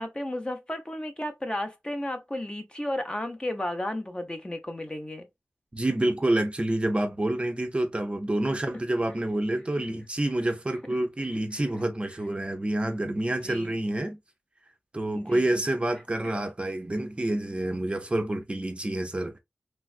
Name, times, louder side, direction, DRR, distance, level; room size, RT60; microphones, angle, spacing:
voice 1, 0.0-5.3 13.4-13.8 15.2-15.6, left 1 dB, 20° left, 0.6 m, -33 dB
voice 2, 5.7-14.2 14.9-19.4, right 1 dB, 25° right, 0.5 m, -28 dB
3.2 x 2.3 x 2.4 m
wide cardioid pair, 90°, 4 cm